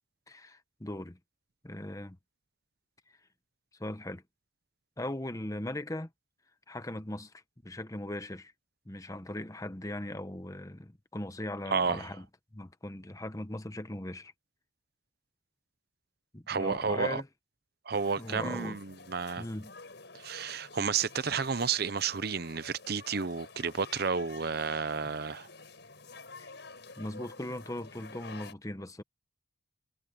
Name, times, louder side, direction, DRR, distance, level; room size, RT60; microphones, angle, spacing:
voice 1, 0.3-1.2 1.6-2.2 3.8-4.2 5.0-6.1 6.7-7.3 7.6-8.5 8.9-12.3 12.5-14.3 16.3-17.3 18.2-18.8 19.4-19.7 26.4-26.5 27.0-29.0, left 1 dB, 20° left, 1.0 m, -39 dB
voice 2, 11.7-12.1 16.5-17.2 17.9-19.5 20.1-25.5, right 5 dB, 55° right, 0.8 m, -31 dB
sound 1, 17.9-28.5, left 3 dB, 65° left, 7.4 m, -50 dB
head